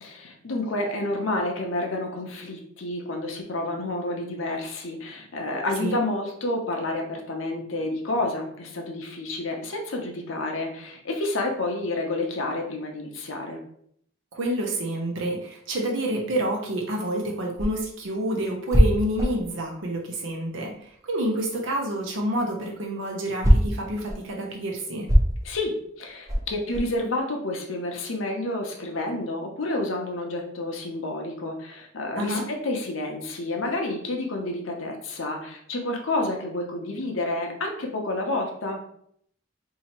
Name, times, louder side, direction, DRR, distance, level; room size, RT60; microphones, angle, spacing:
voice 1, 0.0-13.6 25.4-38.8, left 2 dB, 70° left, 2 dB, 0.7 m, -29 dB
voice 2, 14.3-25.1 32.2-32.5, right 1 dB, 70° right, 0 dB, 0.7 m, -28 dB
sound 1, 17.2-21.0 21.3-27.0, equal, 15° right, 0.7 m, -24 dB
2.8 x 2.8 x 4.3 m, 0.67 s
head